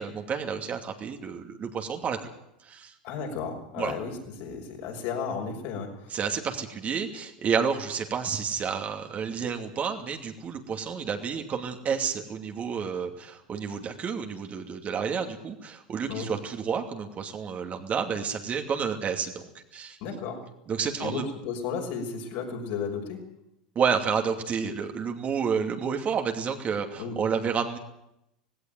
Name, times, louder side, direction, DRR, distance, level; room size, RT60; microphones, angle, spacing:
voice 1, 0.0-2.3 2.6-2.9 3.8-3.9 6.1-19.3 19.7-20.0 20.7-21.2 23.7-27.8, right 6 dB, 35° right, 4 dB, 2.7 m, -30 dB
voice 2, 3.0-6.2 16.1-16.3 20.0-20.4 21.0-23.2 27.0-27.1, left 5 dB, 55° left, 1 dB, 6.0 m, -34 dB
18.0 x 17.0 x 9.2 m, 0.82 s
hypercardioid pair, 85°, 4 cm